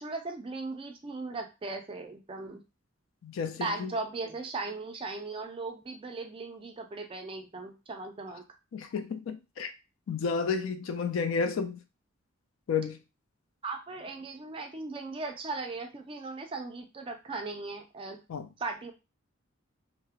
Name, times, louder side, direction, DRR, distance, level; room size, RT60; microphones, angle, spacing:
voice 1, 0.0-2.6 3.6-8.4 13.6-18.2 18.6-18.9, right 3 dB, 25° right, 0.4 m, -38 dB
voice 2, 3.2-3.9 8.7-9.7 10.1-11.8 12.7-13.0 18.3-18.5, left 5 dB, 75° left, 0.4 m, -31 dB
2.3 x 2.0 x 2.8 m
head